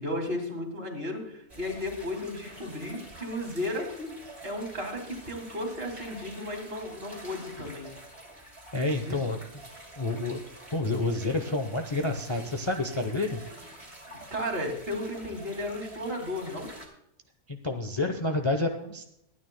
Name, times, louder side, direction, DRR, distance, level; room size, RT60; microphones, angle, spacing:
voice 1, 0.0-4.2 4.4-7.9 9.0-9.2 14.3-16.7, left 1 dB, 40° right, 3 dB, 2.7 m, -34 dB
sound 1, 1.5-16.9, right 1 dB, 20° right, 3.0 m, -48 dB
voice 2, 8.7-9.4 10.0-10.4 10.7-13.4 17.5-19.0, left 2 dB, 25° left, 5 dB, 0.7 m, -29 dB
23.5 x 9.6 x 2.2 m, 0.77 s
omnidirectional pair, 1.5 m